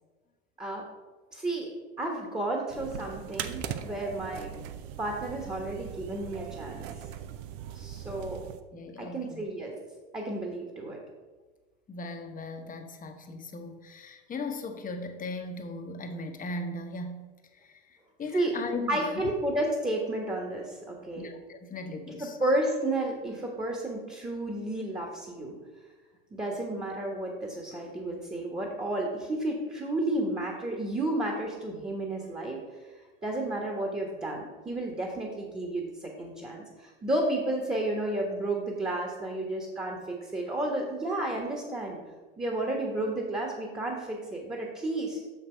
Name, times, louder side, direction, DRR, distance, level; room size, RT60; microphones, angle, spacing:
voice 1, 1.3-1.7 2.0-4.5 5.0-6.9 7.7-8.4 9.0-9.7 10.1-11.0 18.3-21.3 22.2-25.5 26.3-32.6 33.2-42.0 42.4-45.2, right 1 dB, 15° right, 0 dB, 1.4 m, -32 dB
sound 1, 2.7-8.6, right 10 dB, 60° right, 0.6 m, -40 dB
voice 2, 8.7-9.5 11.9-17.2 17.5-19.2 21.2-22.4, left 2 dB, 25° left, 5 dB, 1.0 m, -38 dB
6.4 x 6.1 x 4.5 m, 1.3 s
hypercardioid pair, 85°, 31 cm